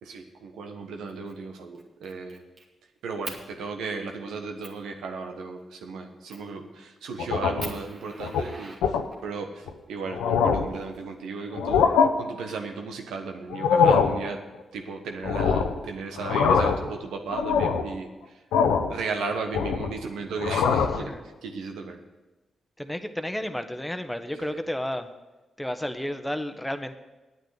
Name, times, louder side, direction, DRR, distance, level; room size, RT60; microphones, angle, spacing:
voice 1, 0.0-2.4 3.0-14.4 14.7-18.4 18.9-22.0 24.4-24.6, right 4 dB, 80° right, 4 dB, 1.2 m, -35 dB
Fire, 1.1-1.4 1.7-2.7 3.2-3.4 4.0-4.1 4.6-4.8 6.3-6.6 7.1-7.2 7.6-9.4 10.4-11.4, right 2 dB, 55° right, 2.2 m, -42 dB
sound 1, 7.2-7.8 8.2-8.4 8.8-9.0 9.7-9.8 10.1-10.8 11.5-12.1 13.5-14.2 15.2-15.8 16.2-16.9 17.3-17.9 18.5-18.9 19.3-20.0 20.4-21.0, left 6 dB, 90° left, 0.8 m, -23 dB
voice 2, 22.8-25.1 25.6-26.9, left 1 dB, 10° left, 8 dB, 1.2 m, -32 dB
9.1 x 9.1 x 8.1 m, 1.1 s
supercardioid pair, 45°, 0 cm